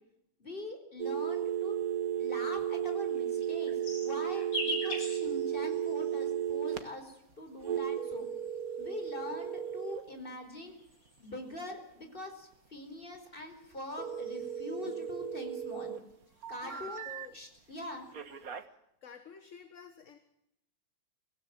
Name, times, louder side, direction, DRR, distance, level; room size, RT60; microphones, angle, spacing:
voice 1, 0.4-1.8 2.2-8.3 8.8-10.8 11.2-15.9 16.5-17.1 17.3-18.1, left 1 dB, 25° left, 5 dB, 4.8 m, -43 dB
sound 1, 1.0-6.8 7.6-10.0 14.0-16.0 16.4-17.3 18.1-18.6, right 9 dB, 50° right, 1.7 m, -34 dB
sound 2, 3.1-6.5 7.5-8.8 9.7-11.5 12.9-15.1 15.5-16.0 16.3-17.4 17.7-18.3, equal, 85° left, 6.8 m, -43 dB
voice 2, 16.3-17.4 19.0-20.2, left 6 dB, 40° left, 9 dB, 1.7 m, -51 dB
25.0 x 16.0 x 8.9 m, 0.79 s
omnidirectional pair, 2.2 m